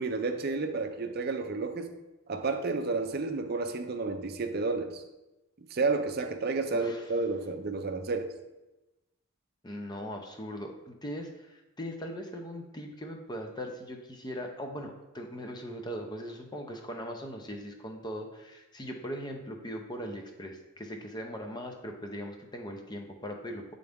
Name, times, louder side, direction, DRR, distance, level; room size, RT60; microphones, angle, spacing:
voice 1, 0.0-2.0 2.3-5.0 5.7-8.3, right 3 dB, 50° right, 7 dB, 0.5 m, -31 dB
voice 2, 6.7-7.1 9.6-23.7, equal, 20° left, 3 dB, 0.6 m, -40 dB
8.3 x 3.9 x 3.5 m, 1.0 s
head